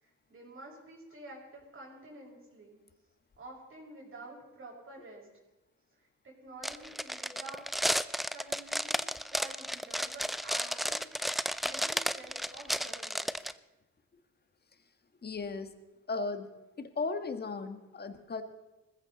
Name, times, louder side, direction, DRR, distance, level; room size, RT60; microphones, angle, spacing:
voice 1, 0.0-2.8 3.4-5.3 6.0-7.6 8.3-11.2 11.6-13.4, right 2 dB, 45° right, -3 dB, 5.6 m, -49 dB
sound 1, 6.6-13.5, equal, ahead, 0.4 m, -33 dB
voice 2, 15.2-15.7 16.1-16.5 16.8-18.4, left 4 dB, 35° left, 8 dB, 1.5 m, -36 dB
20.0 x 15.0 x 4.1 m, 1.0 s
cardioid pair, 90°, 30 cm